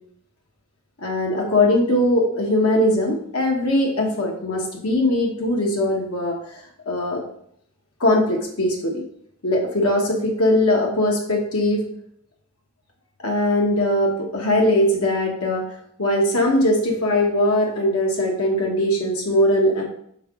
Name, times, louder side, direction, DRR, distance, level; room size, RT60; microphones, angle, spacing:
voice 1, 1.0-6.4 6.9-7.2 8.0-9.0 9.4-11.8 13.2-15.6 16.0-19.8, left 1 dB, 80° left, 0 dB, 1.2 m, -20 dB
5.7 x 4.5 x 3.6 m, 0.67 s
head